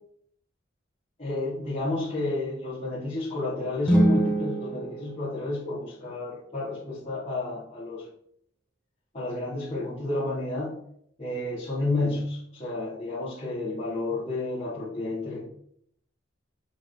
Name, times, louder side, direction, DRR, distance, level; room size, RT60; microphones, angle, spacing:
voice 1, 1.2-8.1 9.1-10.7 11.2-15.4, left 2 dB, 40° left, -11 dB, 2.7 m, -31 dB
sound 1, 3.8-6.0, right 1 dB, 5° left, 1.2 m, -25 dB
6.9 x 4.7 x 6.0 m, 0.69 s
head